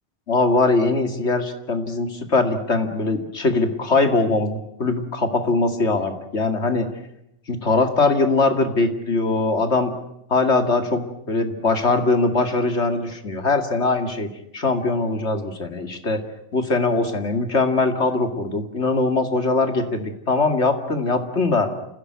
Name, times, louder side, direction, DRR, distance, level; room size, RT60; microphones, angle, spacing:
voice 1, 0.3-6.9 7.5-9.9 10.3-14.3 14.5-16.2 16.5-21.7, left 3 dB, 85° left, 7 dB, 2.6 m, -21 dB
28.5 x 16.0 x 9.4 m, 0.82 s
omnidirectional pair, 1.1 m